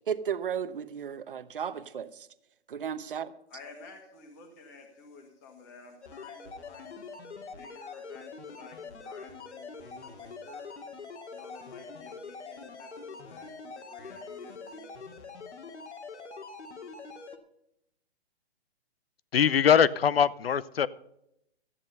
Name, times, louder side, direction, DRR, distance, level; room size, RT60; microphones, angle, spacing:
voice 1, 0.1-2.3 2.7-3.3, right 8 dB, 50° right, 14 dB, 0.9 m, -34 dB
voice 2, 3.5-7.0 7.5-15.2, left 3 dB, 15° left, 4 dB, 1.6 m, -52 dB
sound 1, 6.0-17.4, left 4 dB, 85° left, 2.1 m, -44 dB
voice 3, 19.3-20.9, left 8 dB, 60° left, 19 dB, 0.7 m, -22 dB
14.0 x 9.8 x 5.4 m, 0.79 s
hypercardioid pair, 175°, 34 cm